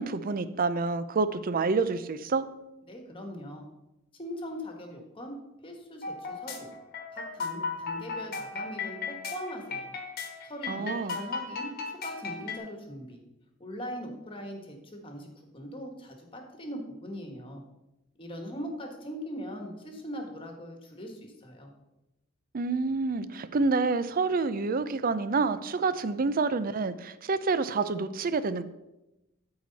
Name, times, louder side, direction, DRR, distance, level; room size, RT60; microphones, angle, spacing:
voice 1, 0.0-2.5 10.7-11.2 22.5-28.6, right 4 dB, 45° right, 13 dB, 0.5 m, -28 dB
voice 2, 2.9-3.6 4.2-5.4 5.6-6.7 7.1-9.9 10.4-11.7 12.0-13.2 13.6-17.6 18.2-21.7, equal, 25° left, 3 dB, 1.5 m, -40 dB
sound 1, 6.0-12.6, left 4 dB, 50° left, 1.3 m, -36 dB
12.5 x 4.8 x 4.1 m, 0.94 s
head